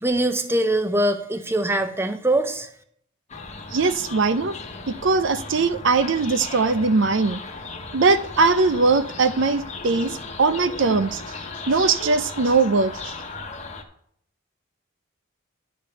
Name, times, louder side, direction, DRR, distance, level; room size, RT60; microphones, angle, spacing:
voice 1, 0.0-2.7, right 1 dB, 10° right, 8 dB, 0.7 m, -22 dB
sound 1, 3.3-13.8, left 3 dB, 30° left, 1.1 m, -36 dB
voice 2, 3.7-4.6 4.9-7.4 7.9-11.2 11.7-13.1, right 4 dB, 55° right, 12 dB, 0.5 m, -20 dB
11.0 x 5.1 x 6.9 m, 0.67 s
head